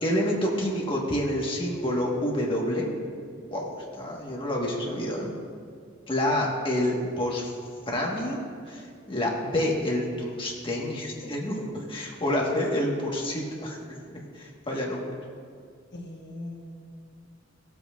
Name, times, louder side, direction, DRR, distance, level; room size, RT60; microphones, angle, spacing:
voice 1, 0.0-2.9 3.5-5.3 6.1-7.5 7.9-13.8 14.1-15.1, left 1 dB, 25° left, -2 dB, 1.5 m, -28 dB
voice 2, 4.9-5.4 15.9-16.8, left 1 dB, 60° left, -1 dB, 1.4 m, -41 dB
17.0 x 7.8 x 2.5 m, 2.1 s
head